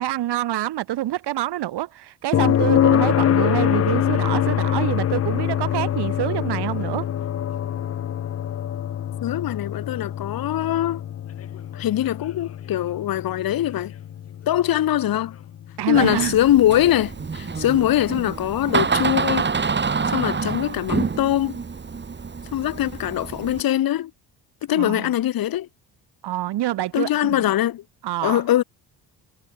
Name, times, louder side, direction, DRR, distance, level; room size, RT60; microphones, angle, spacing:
voice 1, 0.0-7.1 15.8-16.4 24.7-25.1 26.2-27.4 28.0-28.4, right 14 dB, 70° right, 2.0 m, -26 dB
sound 1, 2.3-16.2 18.4-18.5, left 10 dB, 35° left, 0.6 m, -24 dB
voice 2, 9.2-11.0 11.7-13.9 14.5-15.4 15.9-19.5 20.1-21.6 22.5-24.1 24.6-25.7 26.9-27.8 28.2-28.6, left 12 dB, 55° left, 1.2 m, -22 dB
Door, 15.9-23.6, right 5 dB, 25° right, 1.7 m, -27 dB
supercardioid pair, 75°, 42 cm